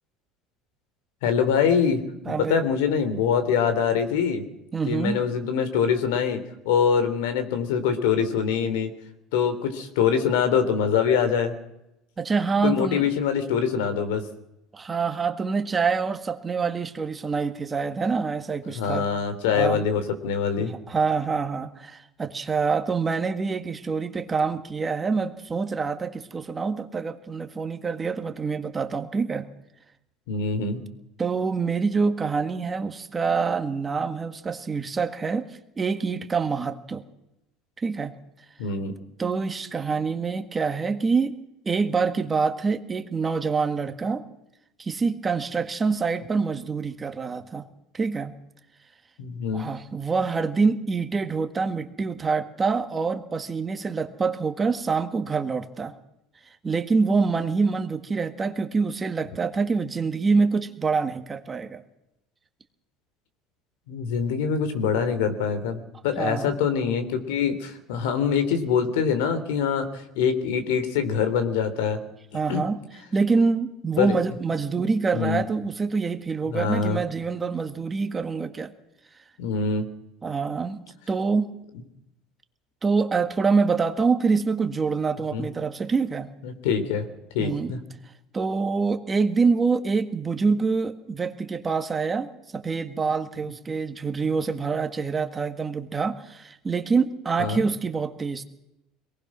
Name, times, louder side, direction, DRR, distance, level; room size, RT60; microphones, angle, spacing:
voice 1, 1.2-2.0 2.3-4.4 4.9-8.9 9.3-11.5 12.6-14.2 18.7-20.7 30.3-30.8 38.6-38.9 49.2-49.7 63.9-72.0 72.5-72.6 74.0-74.1 75.1-75.4 76.5-77.0 79.4-79.9 85.3-85.5 86.4-87.0 87.3-87.8 97.4-97.6, left 7 dB, 90° left, 9 dB, 3.2 m, -24 dB
voice 2, 2.2-2.6 4.7-5.2 12.2-13.1 14.7-19.1 19.5-19.8 20.6-29.5 31.2-35.5 35.8-37.0 37.8-38.1 39.2-41.3 41.6-44.2 44.8-47.6 47.9-48.3 49.5-55.9 56.6-61.8 66.2-66.5 72.3-72.8 73.1-78.7 80.2-80.8 81.1-81.5 82.8-86.3 87.4-87.7 88.3-98.4, right 4 dB, 20° right, 7 dB, 1.7 m, -26 dB
22.5 x 19.0 x 6.2 m, 0.87 s
cardioid pair, 130°, 0 cm